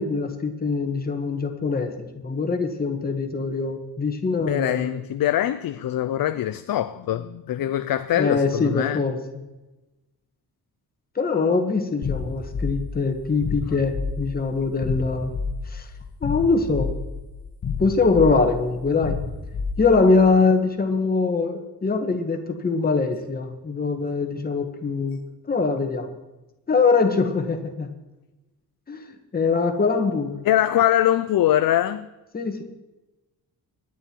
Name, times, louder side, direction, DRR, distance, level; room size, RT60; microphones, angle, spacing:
voice 1, 0.0-5.0 8.2-9.2 11.1-15.3 15.7-15.9 16.2-16.9 17.8-19.2 19.8-25.2 25.5-26.2 26.7-27.9 28.9-30.5 32.3-32.6, left 4 dB, 25° left, 1.6 m, -23 dB
voice 2, 4.5-9.0 30.4-32.1, left 12 dB, 70° left, 0.6 m, -23 dB
sound 1, 12.0-20.3, left 5 dB, 50° left, 1.4 m, -30 dB
24.0 x 9.3 x 4.6 m
wide cardioid pair, 160°, 37 cm